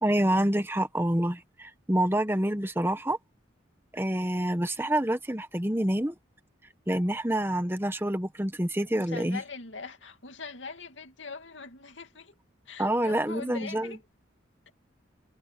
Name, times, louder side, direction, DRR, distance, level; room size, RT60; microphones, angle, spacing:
voice 1, 0.0-3.2 3.9-6.1 6.9-9.4 12.8-13.9, right 1 dB, 10° right, 1.2 m, -27 dB
voice 2, 8.9-12.3 12.7-14.0, left 4 dB, 85° left, 2.6 m, -42 dB
head